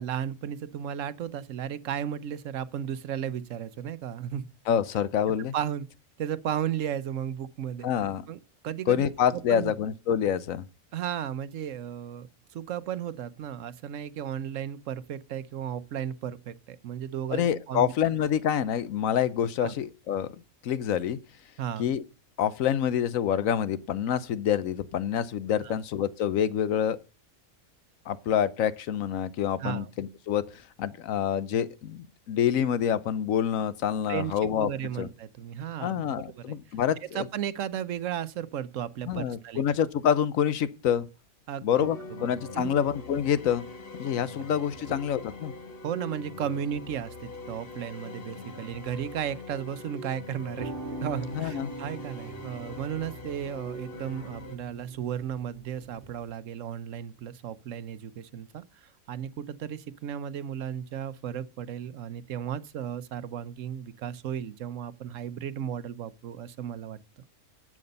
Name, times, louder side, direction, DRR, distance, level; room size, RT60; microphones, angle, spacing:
voice 1, 0.0-4.5 5.5-5.9 6.2-7.9 8.3-8.4 8.6-9.1 9.3-9.7 10.9-17.9 19.6-19.7 21.6-21.9 25.5-25.8 29.6-29.9 34.1-34.3 34.6-36.0 36.4-36.6 37.1-39.6 41.5-41.9 42.2-42.8 44.4-44.5 44.9-45.0 45.8-50.7 51.0-67.0, right 9 dB, 75° right, 1.1 m, -34 dB
voice 2, 4.7-5.5 7.8-8.3 8.9-10.7 17.3-20.3 20.6-21.2 21.8-22.0 22.4-27.0 28.1-34.7 35.0-35.1 35.8-37.3 39.1-41.1 41.6-43.7 44.0-45.5 51.3-51.7, left 9 dB, 85° left, 1.2 m, -27 dB
sound 1, 41.8-54.6, left 3 dB, 50° left, 1.4 m, -43 dB
sound 2, 50.3-56.3, right 2 dB, 45° right, 1.2 m, -42 dB
11.0 x 7.7 x 5.3 m
omnidirectional pair, 1.4 m